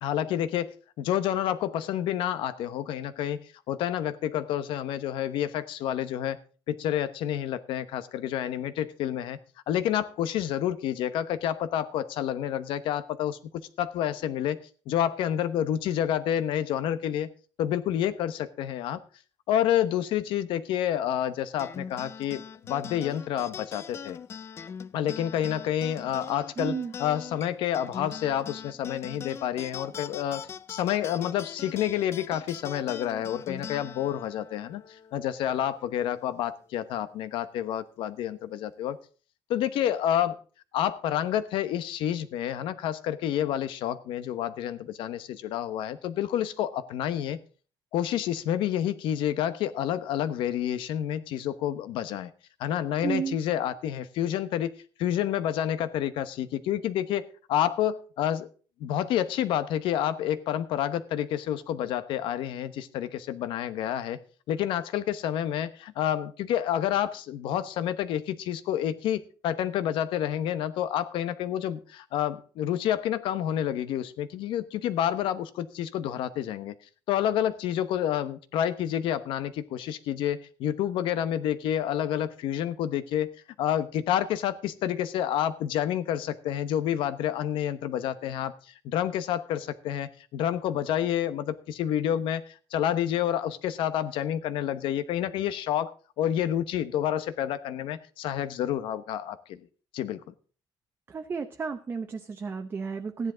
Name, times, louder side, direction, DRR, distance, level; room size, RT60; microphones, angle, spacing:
voice 1, 0.0-6.4 6.7-9.4 9.7-14.6 14.9-17.3 17.6-19.0 19.5-24.2 24.9-39.0 39.5-40.4 40.7-47.4 47.9-52.3 52.6-54.7 55.0-58.5 58.8-64.2 64.5-76.7 77.1-83.3 83.6-99.7 99.9-100.3, left 10 dB, 90° left, 12 dB, 1.0 m, -29 dB
sound 1, 21.6-36.3, left 7 dB, 30° left, 0.4 m, -42 dB
voice 2, 26.6-26.9 53.0-53.4 101.1-103.3, right 5 dB, 25° right, 6 dB, 0.7 m, -32 dB
14.5 x 10.5 x 3.9 m, 0.39 s
cardioid pair, 160°, 8 cm